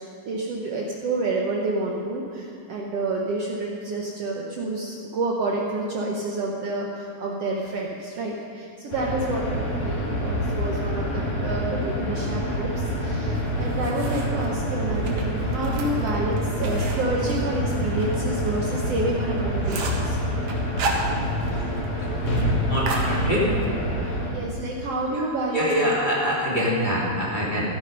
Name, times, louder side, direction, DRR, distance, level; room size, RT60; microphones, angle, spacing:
voice 1, 0.3-20.2 24.1-25.9, right 2 dB, 85° right, -2 dB, 1.3 m, -29 dB
sound 1, 8.9-24.3, equal, 60° left, 5.1 m, -26 dB
sound 2, 13.3-14.5 15.0-18.2 18.5-18.6 19.0-19.1 19.4-20.1 20.5-21.6 21.8-21.9 22.2-22.5 22.9-23.7, right 4 dB, 55° right, 2.5 m, -33 dB
voice 2, 22.7-23.4 25.5-27.6, equal, 15° left, -6 dB, 2.3 m, -24 dB
15.0 x 13.0 x 5.4 m, 2.4 s
omnidirectional pair, 4.4 m